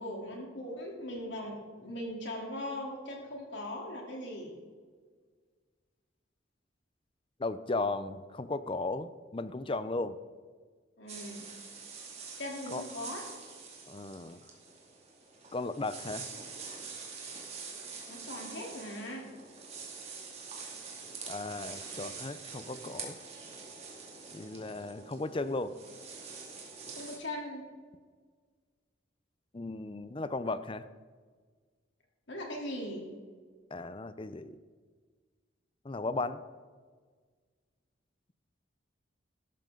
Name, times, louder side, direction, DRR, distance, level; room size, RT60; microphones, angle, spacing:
voice 1, 0.0-4.5 11.0-11.5 12.4-13.2 18.1-19.3 26.9-27.6 32.3-33.1, left 1 dB, 65° left, -1 dB, 3.3 m, -39 dB
voice 2, 7.4-10.2 12.7-12.8 13.9-14.4 15.5-16.3 21.3-23.2 24.3-25.7 29.5-30.9 33.7-34.5 35.8-36.4, left 3 dB, 25° left, 13 dB, 0.6 m, -36 dB
sound 1, 11.1-27.2, right 5 dB, 35° right, 2.5 m, -45 dB
13.5 x 12.5 x 3.9 m, 1.6 s
head